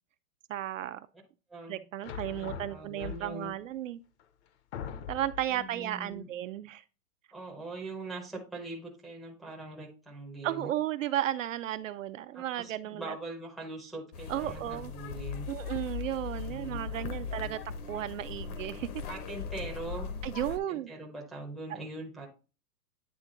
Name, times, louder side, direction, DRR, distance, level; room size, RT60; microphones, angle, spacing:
voice 1, 0.5-1.0 1.7-4.0 5.1-6.8 10.4-13.2 14.3-14.9 15.5-17.6 17.9-18.9 20.2-20.9, right 12 dB, 55° right, 0.5 m, -34 dB
voice 2, 1.5-1.8 2.2-3.5 5.5-6.3 7.3-10.7 12.3-15.5 16.3-17.5 19.1-20.1 20.5-22.3, right 2 dB, ahead, 0.6 m, -42 dB
sound 1, 2.0-3.6 4.2-4.3 4.7-5.6, left 7 dB, 45° left, 0.7 m, -41 dB
sound 2, 14.1-20.6, left 6 dB, 65° left, 1.1 m, -39 dB
9.1 x 3.5 x 3.7 m
hypercardioid pair, 150°, 48 cm